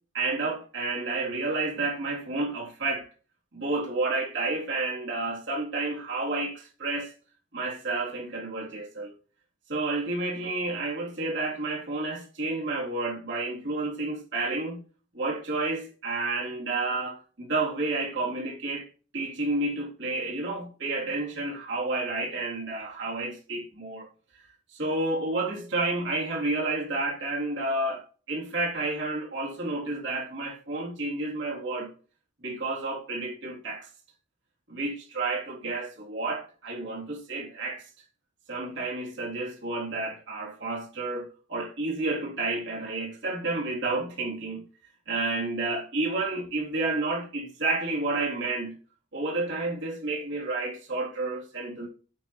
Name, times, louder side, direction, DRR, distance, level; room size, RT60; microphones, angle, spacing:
voice 1, 0.1-3.1 3.5-7.1 7.5-9.1 9.7-14.8 15.1-18.9 19.1-24.1 24.7-31.9 32.4-33.9 34.7-37.9 38.5-44.6 45.1-48.8 49.1-51.9, right 2 dB, 60° right, 3.4 m, -30 dB
16.0 x 6.0 x 3.2 m
head